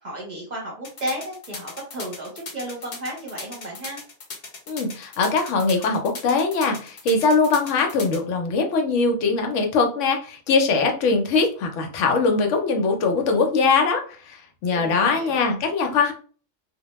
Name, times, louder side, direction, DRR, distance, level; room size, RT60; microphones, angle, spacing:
voice 1, 0.0-4.0 14.7-15.5, right 1 dB, 40° right, -2 dB, 0.8 m, -33 dB
sound 1, 0.8-8.2, left 3 dB, 50° left, 0.6 m, -37 dB
voice 2, 4.7-14.4 14.6-16.1, left 4 dB, 75° left, 4 dB, 0.9 m, -21 dB
2.2 x 2.1 x 2.9 m, 0.40 s
omnidirectional pair, 1.3 m